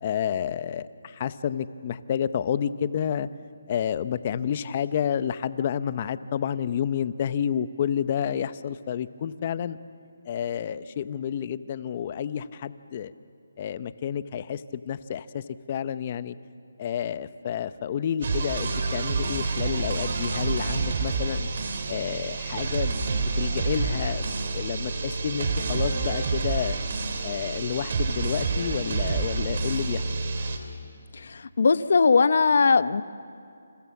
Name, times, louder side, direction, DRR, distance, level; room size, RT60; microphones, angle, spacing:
voice 1, 0.0-3.3 3.7-9.8 10.3-13.1 13.6-16.3 16.8-21.5 21.9-24.2 24.5-26.8 27.2-30.0, left 9 dB, 30° left, 14 dB, 0.8 m, -30 dB
sound 1, 18.2-30.6, right 4 dB, 45° right, 3.1 m, -28 dB
voice 2, 31.1-33.0, left 4 dB, 60° left, 14 dB, 0.9 m, -20 dB
29.5 x 28.0 x 7.2 m, 2.5 s
hypercardioid pair, 165°, 0 cm